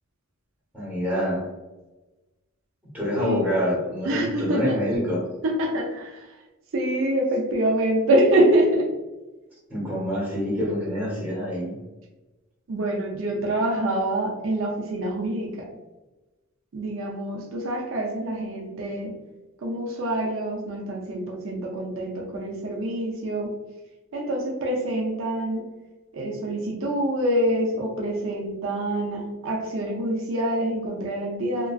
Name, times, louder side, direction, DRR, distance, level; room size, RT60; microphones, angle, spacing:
voice 1, 0.7-1.5 2.9-5.2 9.7-11.7, equal, 10° right, -6 dB, 1.2 m, -26 dB
voice 2, 4.0-4.8 5.4-6.3 6.7-8.9 12.7-15.7 16.7-19.1 19.6-23.5 24.1-25.6 26.1-31.7, right 1 dB, 65° right, 0 dB, 0.5 m, -25 dB
2.9 x 2.5 x 2.3 m, 1.1 s
head